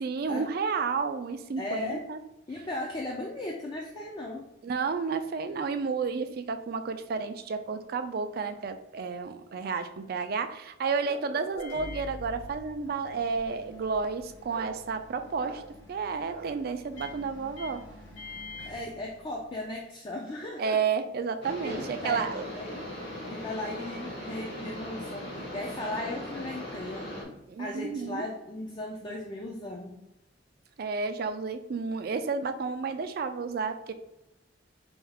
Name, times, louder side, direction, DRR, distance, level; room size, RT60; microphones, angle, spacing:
voice 1, 0.0-2.2 4.6-17.8 18.6-18.7 20.6-22.4 22.7-22.8 27.5-28.3 30.8-33.9, right 5 dB, 55° right, 9 dB, 0.3 m, -31 dB
voice 2, 1.6-2.1 2.5-4.5 18.7-20.8 21.6-22.9 23.3-30.0, left 1 dB, 25° left, -1 dB, 0.4 m, -37 dB
Microwave oven, 11.5-19.7, left 2 dB, 80° left, 1.0 m, -46 dB
sound 1, 21.4-27.2, left 1 dB, 60° left, 1.4 m, -39 dB
4.5 x 2.3 x 3.4 m, 0.92 s
head